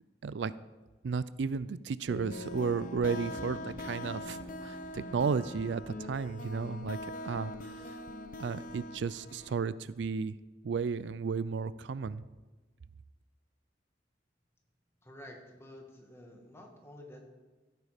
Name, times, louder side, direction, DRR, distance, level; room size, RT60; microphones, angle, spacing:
voice 1, 1.0-8.0 8.4-10.4 10.6-12.2, right 5 dB, 75° right, 17 dB, 0.4 m, -34 dB
sound 1, 2.1-9.6, left 1 dB, 50° left, 0.9 m, -42 dB
sound 2, 3.1-6.0, equal, 85° left, 2.7 m, -54 dB
voice 2, 15.0-17.3, left 1 dB, 15° left, 1 dB, 2.1 m, -50 dB
16.0 x 9.2 x 5.0 m, 1.2 s
head